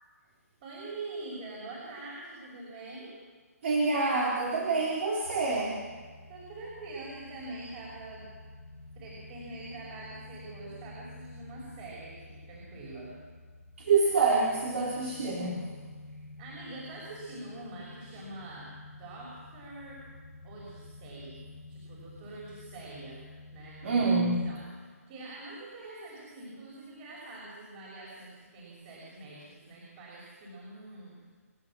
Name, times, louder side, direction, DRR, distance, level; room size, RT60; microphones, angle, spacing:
voice 1, 0.6-3.2 6.3-8.3 9.0-13.2 16.4-20.0 20.4-23.2 23.5-24.0 24.4-24.6 25.1-31.2, right 2 dB, 35° right, -5 dB, 6.0 m, -44 dB
voice 2, 3.6-5.9 13.8-15.7 23.8-24.5, right 3 dB, 50° right, -2 dB, 3.4 m, -27 dB
sound 1, 5.2-24.5, left 2 dB, 85° left, 2.7 m, -50 dB
27.5 x 13.0 x 7.5 m, 1.5 s
figure-of-eight pair, 145°, 9 cm